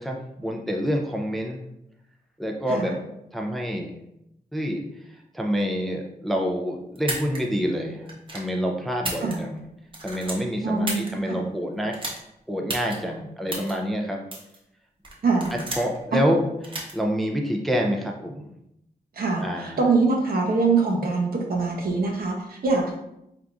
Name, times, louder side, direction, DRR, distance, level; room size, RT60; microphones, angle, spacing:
voice 1, 0.0-1.6 2.4-3.0 3.3-3.9 4.5-4.8 5.3-9.6 10.0-11.9 12.5-14.2 15.5-16.4 16.7-18.5 19.4-19.8, equal, ahead, 1 dB, 0.4 m, -27 dB
sound 1, 7.0-7.4 8.1-8.5 8.9-9.6 9.9-11.1 11.9-12.2 12.7-13.0 13.5-13.7 14.3-14.6 15.0-16.0 16.6-16.9, right 2 dB, 35° right, 0.9 m, -32 dB
voice 2, 10.6-11.4 15.2-15.5 16.1-16.2 19.2-23.0, right 3 dB, 70° right, 0 dB, 0.9 m, -24 dB
4.5 x 3.5 x 2.5 m, 0.82 s
wide cardioid pair, 165°, 16 cm